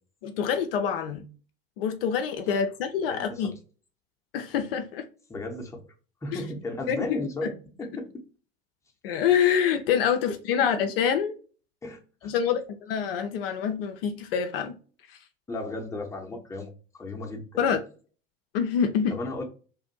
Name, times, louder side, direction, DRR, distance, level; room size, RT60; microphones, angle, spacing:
voice 1, 0.2-1.3 1.8-3.5 4.3-5.0 6.3-6.4 6.9-7.0 9.0-11.3 12.2-14.8 15.1-15.2 17.6-17.8 18.5-19.2, left 7 dB, 60° left, 7 dB, 0.4 m, -26 dB
voice 2, 3.1-3.5 5.3-5.8 6.2-7.5 7.8-8.1 10.3-10.7 11.8-12.3 15.5-17.6 19.1-19.4, left 2 dB, 10° left, 2 dB, 0.7 m, -35 dB
2.6 x 2.5 x 2.6 m, 0.38 s
figure-of-eight pair, 65°, 32 cm